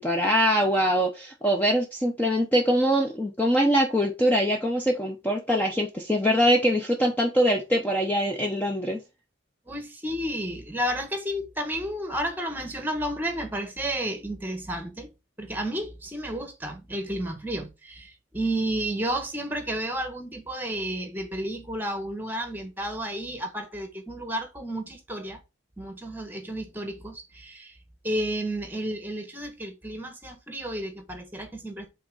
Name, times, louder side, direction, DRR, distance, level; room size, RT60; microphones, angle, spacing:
voice 1, 0.0-9.0, equal, 10° left, 0.8 m, -23 dB
voice 2, 9.7-15.1 15.4-25.4 25.8-27.8 28.0-31.9, right 1 dB, 10° right, 1.3 m, -32 dB
5.7 x 3.8 x 5.5 m
head